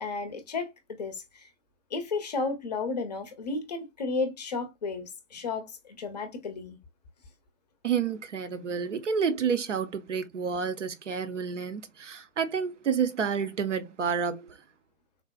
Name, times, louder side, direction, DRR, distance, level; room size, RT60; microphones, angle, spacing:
voice 1, 0.0-1.5 1.9-6.8, left 4 dB, 30° left, 0.6 m, -33 dB
voice 2, 7.8-14.6, right 6 dB, 65° right, 0.7 m, -29 dB
3.8 x 2.0 x 2.2 m
figure-of-eight pair, 125°, 39 cm